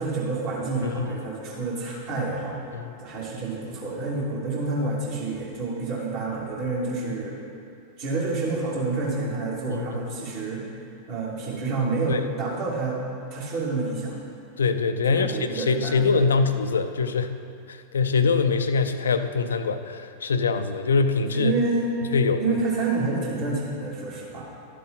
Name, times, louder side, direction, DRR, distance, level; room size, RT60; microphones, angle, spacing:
voice 1, 0.0-7.4 8.0-10.6 11.1-13.0 13.3-14.2 15.1-16.1 21.3-21.9 22.4-24.5, right 3 dB, 45° right, -4 dB, 2.6 m, -28 dB
voice 2, 0.8-1.2 2.7-2.9 9.7-9.9 10.2-10.3 12.1-12.2 14.6-17.4 17.7-21.5 22.1-22.6, left 4 dB, 70° left, 9 dB, 0.5 m, -24 dB
13.0 x 7.5 x 4.1 m, 2.5 s
figure-of-eight pair, 90°, 0 cm